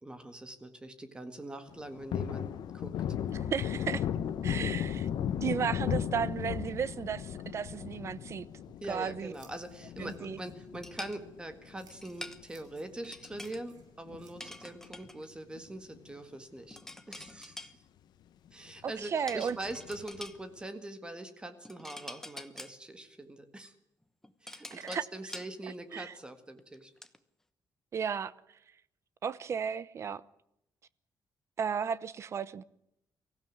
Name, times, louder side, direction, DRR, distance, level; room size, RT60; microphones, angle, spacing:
voice 1, 0.0-2.5 2.7-2.9 8.8-16.8 17.1-17.8 18.5-23.7 24.4-26.9, right 1 dB, 15° right, 1.8 m, -43 dB
Thunder, 1.7-12.4 12.8-12.9 13.3-14.8 15.0-15.2 15.5-16.4 16.8-16.9 17.2-17.3 19.7-20.2, left 9 dB, 85° left, 1.1 m, -36 dB
voice 2, 3.3-4.1 4.4-5.1 5.4-8.5 8.9-9.3 10.0-10.4 18.8-19.6 24.7-25.0 25.9-26.1 27.9-28.3 29.2-30.2 31.6-32.6, right 7 dB, 40° right, 0.8 m, -34 dB
Scissors, 8.4-16.6, right 5 dB, 75° right, 5.8 m, -65 dB
sound 1, 10.8-11.2 11.9-12.4 13.0-13.6 14.4-15.3 16.7-17.7 19.3-20.4 21.6-22.7 24.0-25.5 26.0-26.2 26.6-27.2, left 1 dB, 5° left, 1.1 m, -46 dB
24.0 x 16.0 x 9.3 m
wide cardioid pair, 175°, 7 cm